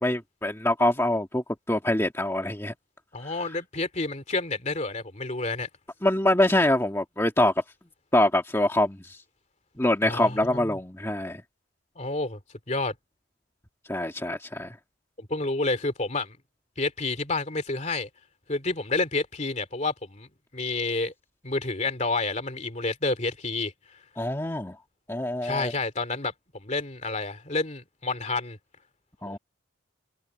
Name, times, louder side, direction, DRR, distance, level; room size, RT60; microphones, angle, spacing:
voice 1, 0.0-2.7 3.2-3.3 6.0-7.5 8.1-9.2 9.8-11.4 13.9-14.8 24.2-24.8 25.1-25.7 29.2-29.4, left 1 dB, 15° left, 1.9 m, -25 dB
voice 2, 3.1-5.7 10.0-10.8 12.0-12.4 12.7-12.9 15.2-16.4 16.8-18.1 18.5-21.1 21.4-23.7 25.4-28.6 29.3-29.4, left 3 dB, 35° left, 2.7 m, -29 dB
head